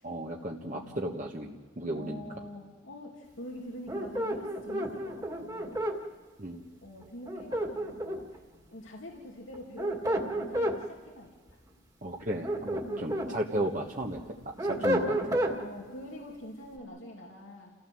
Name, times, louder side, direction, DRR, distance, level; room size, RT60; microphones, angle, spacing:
voice 1, 0.0-2.2 6.4-6.6 12.0-15.4, right 1 dB, 40° right, 0 dB, 1.4 m, -35 dB
voice 2, 0.6-1.2 1.9-5.9 6.8-8.4 8.7-11.6 12.8-13.3 14.6-14.8 15.6-17.7, left 1 dB, 85° left, -1 dB, 2.7 m, -45 dB
sound 1, 3.9-6.0 7.3-8.4 9.5-10.8 12.2-13.3 13.8-15.6, right 1 dB, 20° right, 2.1 m, -31 dB
29.5 x 16.0 x 7.7 m, 1.5 s
head